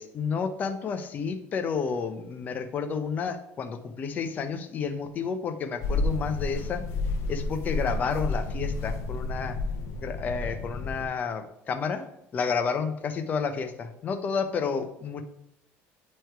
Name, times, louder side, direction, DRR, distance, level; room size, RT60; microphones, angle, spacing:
voice 1, 0.0-6.8 7.3-9.6 10.0-12.1 12.3-15.2, left 5 dB, 30° left, 6 dB, 0.6 m, -30 dB
sound 1, 5.8-11.1, left 2 dB, 60° left, 0.8 m, -30 dB
9.3 x 3.2 x 4.5 m, 0.78 s
cardioid pair, 150°, 5 cm